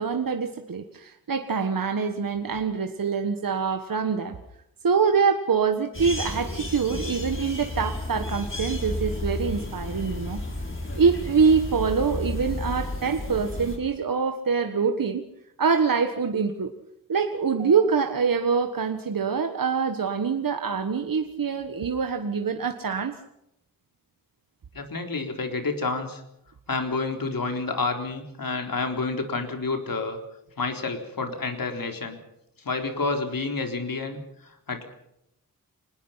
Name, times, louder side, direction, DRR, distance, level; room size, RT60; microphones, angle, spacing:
voice 1, 0.0-4.4 4.8-10.4 10.9-15.2 15.6-16.7 17.1-23.2, right 5 dB, 70° right, 6 dB, 1.6 m, -25 dB
sound 1, 5.9-13.8, left 1 dB, 35° left, 5.5 m, -32 dB
voice 2, 24.7-26.2 26.7-30.2 30.6-32.2 32.6-34.8, left 3 dB, 70° left, 5 dB, 4.0 m, -29 dB
25.5 x 20.0 x 5.8 m, 0.80 s
wide cardioid pair, 70°, 35 cm